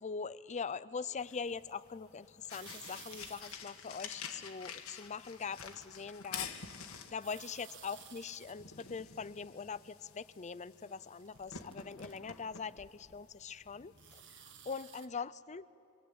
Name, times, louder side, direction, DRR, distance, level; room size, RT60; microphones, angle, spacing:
voice 1, 0.0-6.5 7.1-14.2 14.7-15.7, left 5 dB, 30° left, 17 dB, 0.5 m, -42 dB
sound 1, 1.2-14.8, left 6 dB, 70° left, 1.8 m, -49 dB
sound 2, 2.4-3.5 4.8-5.8 7.2-8.5 10.9-12.2 14.0-15.1, right 9 dB, 60° right, 1.3 m, -55 dB
28.0 x 23.0 x 8.8 m, 2.8 s
head